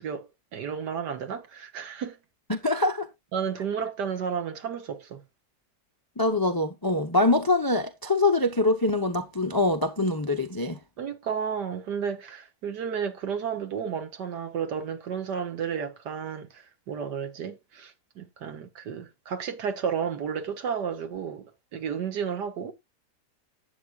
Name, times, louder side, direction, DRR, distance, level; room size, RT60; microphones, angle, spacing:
voice 1, 0.0-2.2 3.3-5.2 11.0-22.7, right 7 dB, 85° right, 1.9 m, -32 dB
voice 2, 2.5-3.1 6.2-10.8, left 2 dB, 30° left, 0.4 m, -24 dB
12.0 x 8.1 x 2.3 m
omnidirectional pair, 1.8 m